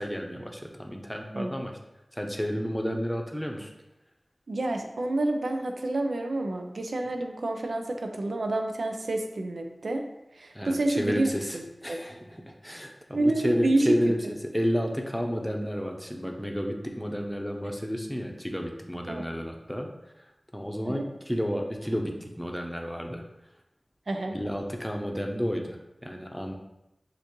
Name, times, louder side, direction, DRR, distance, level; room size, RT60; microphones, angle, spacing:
voice 1, 0.0-1.8 2.1-3.7 10.5-19.9 20.5-23.2 24.3-26.5, equal, 5° left, 2 dB, 0.7 m, -31 dB
voice 2, 4.5-10.0 10.3-11.3 11.5-11.6 11.9-12.0 13.1-14.1 19.1-19.2 20.8-21.0 24.1-24.4, right 2 dB, 85° right, 4 dB, 0.5 m, -28 dB
6.8 x 2.6 x 3.0 m, 0.92 s
wide cardioid pair, 60°, 0 cm